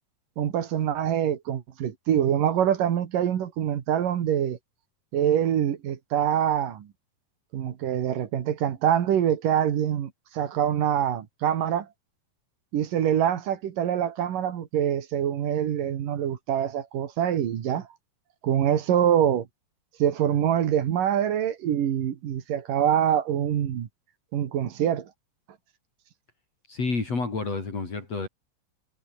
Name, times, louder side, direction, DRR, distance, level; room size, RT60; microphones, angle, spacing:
voice 1, 0.4-4.6 5.1-6.9 7.5-11.9 12.7-17.9 18.4-19.5 20.0-23.9 24.3-25.1, right 10 dB, 85° right, 3.6 m, -25 dB
voice 2, 26.7-28.3, left 4 dB, 50° left, 6.3 m, -29 dB
omnidirectional pair, 3.8 m